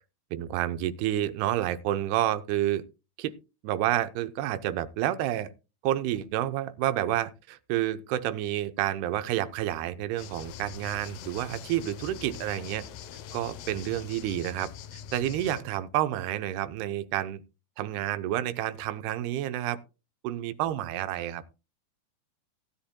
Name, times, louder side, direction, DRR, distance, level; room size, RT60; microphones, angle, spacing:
voice 1, 0.3-2.8 3.2-3.3 3.6-5.5 5.8-12.9 13.3-17.4 17.8-19.8 20.2-21.4, right 13 dB, 85° right, 11 dB, 2.8 m, -29 dB
sound 1, 10.2-15.6, left 8 dB, 70° left, 2.4 m, -43 dB
18.0 x 10.0 x 2.2 m, 0.30 s
omnidirectional pair, 4.5 m